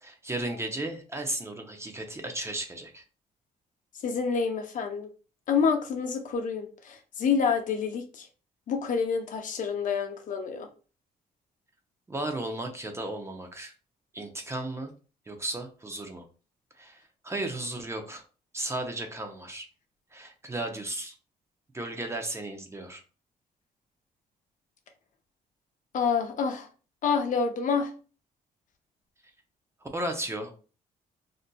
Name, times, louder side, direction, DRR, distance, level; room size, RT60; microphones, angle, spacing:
voice 1, 0.0-3.0 12.1-13.7 14.1-14.9 15.3-16.2 16.8-18.2 18.5-19.7 20.1-21.1 21.7-23.0 29.8-30.5, right 1 dB, 15° right, 0.6 m, -35 dB
voice 2, 4.0-5.1 5.5-8.3 8.7-10.7 25.9-26.7 27.0-27.9, left 6 dB, 60° left, 0.7 m, -28 dB
4.0 x 2.5 x 2.2 m
cardioid pair, 100°, 15 cm